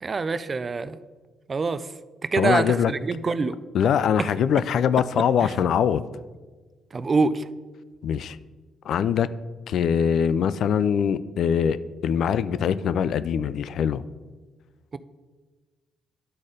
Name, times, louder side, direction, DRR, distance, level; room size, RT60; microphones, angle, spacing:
voice 1, 0.0-1.0 1.5-1.9 2.3-3.6 4.2-4.3 5.4-5.5 6.9-7.4 14.9-15.0, right 4 dB, 35° right, 13 dB, 0.4 m, -25 dB
voice 2, 2.4-2.9 3.7-6.0 8.0-8.4 8.9-9.3 9.7-14.0, left 8 dB, 70° left, 16 dB, 0.3 m, -23 dB
11.0 x 4.3 x 4.9 m, 1.4 s
cardioid pair, 90°, 0 cm